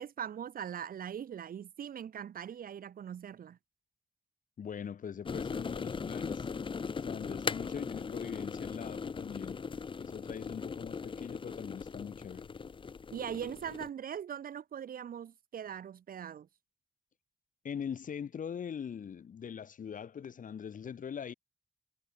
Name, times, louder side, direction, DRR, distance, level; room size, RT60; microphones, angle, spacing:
voice 1, 0.0-3.6 13.1-16.5, right 9 dB, 75° right, 1.3 m, -41 dB
voice 2, 4.6-6.5 7.0-9.6 10.0-12.5 17.6-21.3, left 7 dB, 65° left, 3.1 m, -42 dB
sound 1, 5.3-13.9, left 5 dB, 35° left, 0.9 m, -39 dB
wide cardioid pair, 160°, 15 cm